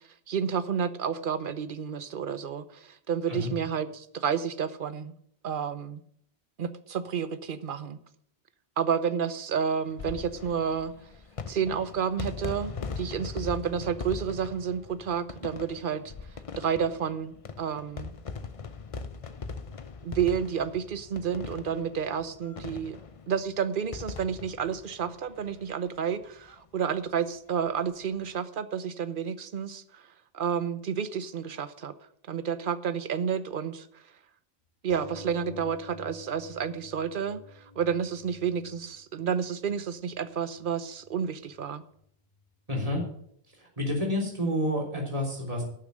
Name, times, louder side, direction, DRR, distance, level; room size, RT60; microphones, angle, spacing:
voice 1, 0.3-5.1 5.4-6.0 6.6-8.0 8.8-10.9 11.5-16.1 16.6-18.1 20.0-23.0 23.3-30.1 30.3-31.9 32.3-34.0 34.8-41.8, right 7 dB, 60° right, 13 dB, 0.9 m, -30 dB
sound 1, 9.9-25.9 26.2-26.3 26.5-26.6 27.9-28.1, left 5 dB, 40° left, 0.7 m, -40 dB
sound 2, 34.9-39.9 40.7-40.8 41.1-41.2, left 1 dB, 80° left, 3.5 m, -48 dB
voice 2, 42.7-43.0 43.6-45.6, left 1 dB, 35° right, -3 dB, 3.4 m, -29 dB
11.5 x 7.0 x 6.3 m, 0.67 s
omnidirectional pair, 1.0 m